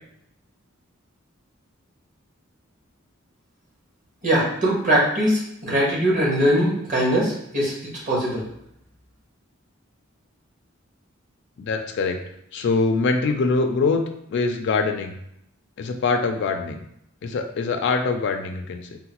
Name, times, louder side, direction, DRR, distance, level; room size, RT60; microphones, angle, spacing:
voice 1, 4.2-7.7 8.1-8.4, equal, 40° right, -5 dB, 1.2 m, -21 dB
voice 2, 11.6-12.2 12.5-14.0 14.3-15.2 15.8-16.8 17.2-19.0, left 4 dB, 60° left, 4 dB, 0.3 m, -23 dB
3.8 x 2.1 x 2.9 m, 0.74 s
head